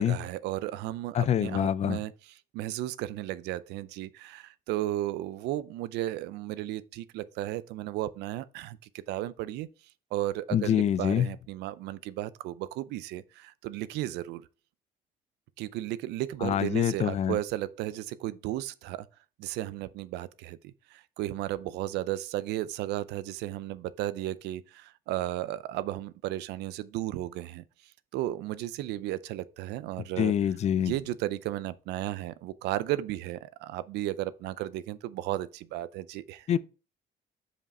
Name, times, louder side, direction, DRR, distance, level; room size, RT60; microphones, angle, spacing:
voice 1, 0.0-2.1 2.5-8.8 9.1-9.7 10.1-14.4 15.6-19.1 19.4-27.6 28.1-30.3 30.8-36.5, right 14 dB, 85° right, 0.5 m, -34 dB
voice 2, 1.1-2.0 10.5-11.3 16.4-17.4 30.2-30.9 36.5-36.6, left 9 dB, 40° left, 0.4 m, -25 dB
5.4 x 5.1 x 4.1 m
cardioid pair, 110°, 17 cm